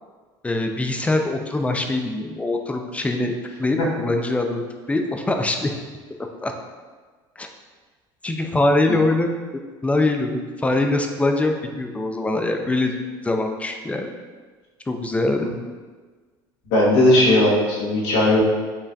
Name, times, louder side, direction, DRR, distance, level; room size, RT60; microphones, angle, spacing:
voice 1, 0.4-3.3 3.6-5.7 6.2-6.5 7.4-7.5 8.2-9.4 9.8-13.0 13.2-14.1 14.9-15.5, left 2 dB, 10° left, 4 dB, 0.4 m, -23 dB
voice 2, 16.7-18.4, left 1 dB, 75° left, -5 dB, 1.2 m, -17 dB
5.5 x 2.5 x 2.2 m, 1.4 s
supercardioid pair, 95°, 10 cm